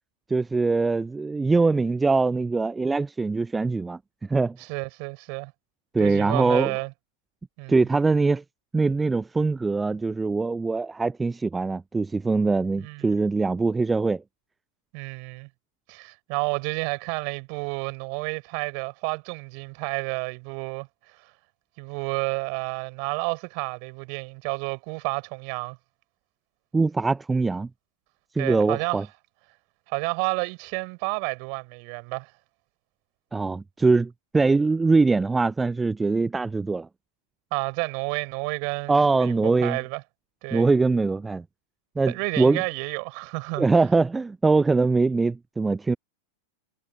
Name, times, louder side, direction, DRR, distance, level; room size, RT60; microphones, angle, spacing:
voice 1, 0.3-4.6 5.9-6.7 7.7-8.4 8.7-14.2 26.7-27.7 28.3-29.0 33.3-36.9 38.9-39.8 40.5-41.4 42.0-42.6 43.6-46.0, right 3 dB, 10° right, 0.5 m, -22 dB
voice 2, 4.6-5.5 6.0-6.9 7.6-7.9 12.8-13.2 14.9-15.5 15.9-21.3 21.8-25.8 28.4-29.0 29.9-32.3 37.5-40.0 40.4-40.7 42.1-43.7, right 40 dB or more, 45° right, 6.7 m, -30 dB
figure-of-eight pair, 90°, 0 cm